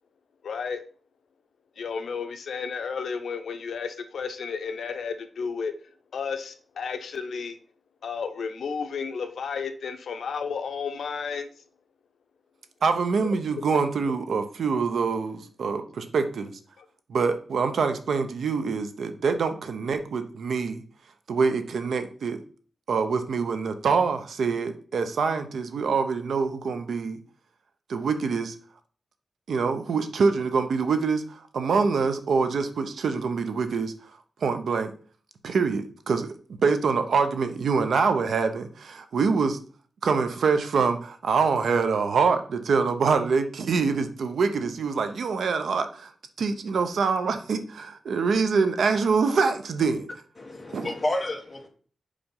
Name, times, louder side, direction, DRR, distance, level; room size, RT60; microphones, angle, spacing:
voice 1, 0.4-0.8 1.8-5.7 6.1-7.6 8.0-11.5 16.8-16.9, left 5 dB, 80° left, 8 dB, 0.8 m, -32 dB
voice 2, 12.8-16.5 17.1-20.8 21.3-22.4 22.9-27.2 27.9-28.5 29.5-33.9 34.4-34.9 35.4-36.3 36.6-39.6 40.0-46.1 46.4-50.1 50.7-50.9, right 5 dB, 80° right, 8 dB, 0.9 m, -25 dB
voice 3, 50.4-51.7, left 1 dB, 30° left, 3 dB, 1.5 m, -30 dB
5.1 x 5.1 x 5.5 m, 0.43 s
wide cardioid pair, 120°, 0 cm